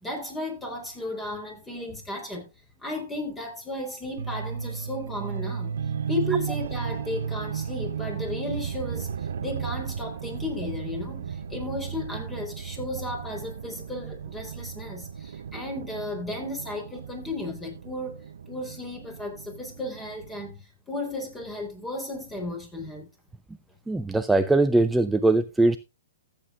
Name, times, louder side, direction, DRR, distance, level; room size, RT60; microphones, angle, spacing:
voice 1, 0.0-2.5 2.8-5.7 6.1-9.1 9.4-20.6 20.9-23.0, left 1 dB, 10° left, 4.0 m, -34 dB
sound 1, 4.2-20.5, right 7 dB, 70° right, 0.8 m, -35 dB
voice 2, 23.9-25.8, right 2 dB, 5° right, 0.5 m, -21 dB
15.0 x 8.6 x 2.5 m
hypercardioid pair, 130°, 0 cm